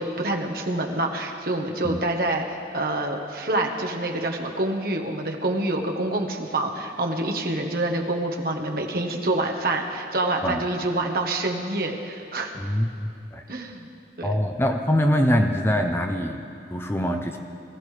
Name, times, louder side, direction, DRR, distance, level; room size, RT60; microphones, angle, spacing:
voice 1, 0.0-12.5 13.5-13.9 14.2-14.4, right 2 dB, 55° right, 2 dB, 1.1 m, -27 dB
voice 2, 12.6-13.4 14.2-17.4, equal, 15° left, 4 dB, 0.6 m, -24 dB
19.5 x 14.0 x 3.3 m, 2.5 s
head